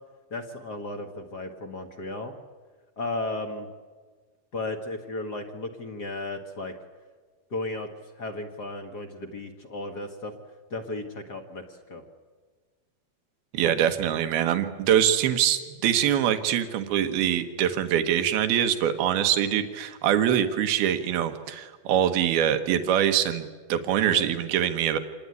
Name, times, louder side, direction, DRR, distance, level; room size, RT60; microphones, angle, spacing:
voice 1, 0.3-2.3 3.0-3.7 4.5-6.7 7.5-7.9 8.2-10.3 10.7-12.0 24.1-24.3, left 2 dB, 45° left, 5 dB, 1.3 m, -34 dB
voice 2, 13.5-25.0, right 10 dB, 85° right, 8 dB, 3.2 m, -24 dB
27.0 x 20.0 x 9.6 m, 1.4 s
omnidirectional pair, 4.3 m